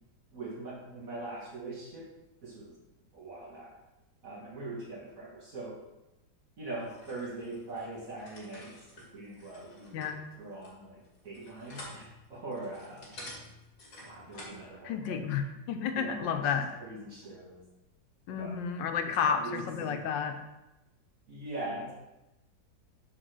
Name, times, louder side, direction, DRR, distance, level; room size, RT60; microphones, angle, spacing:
voice 1, 0.3-2.1 2.4-2.8 3.1-3.7 4.2-5.8 6.6-13.2 14.0-15.4 15.9-17.6 18.3-18.6 19.3-20.1 21.3-21.9, right 2 dB, 50° right, -4 dB, 1.8 m, -42 dB
sound 1, 6.7-14.7, left 1 dB, 50° left, 2.3 m, -50 dB
voice 2, 14.8-16.7 18.3-20.4, left 7 dB, 85° left, 6 dB, 1.4 m, -31 dB
6.5 x 4.3 x 6.2 m, 0.97 s
omnidirectional pair, 2.0 m